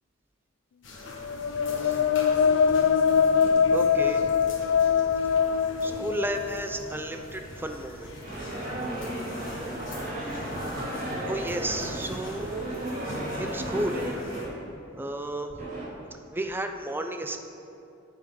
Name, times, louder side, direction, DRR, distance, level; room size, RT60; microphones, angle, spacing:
sound 1, 0.8-14.4, left 1 dB, 70° left, 1.5 m, -42 dB
sound 2, 1.2-6.9, left 6 dB, 85° left, 0.3 m, -23 dB
voice 1, 2.4-2.8 3.7-4.2 5.8-8.1 9.9-10.5 11.3-12.6 13.4-14.1 15.0-15.7 16.3-17.4, right 1 dB, 10° right, 5 dB, 0.5 m, -33 dB
sound 3, 8.2-14.4 15.6-15.8, right 1 dB, 45° right, 2.3 m, -34 dB
9.6 x 7.6 x 3.8 m, 2.6 s
head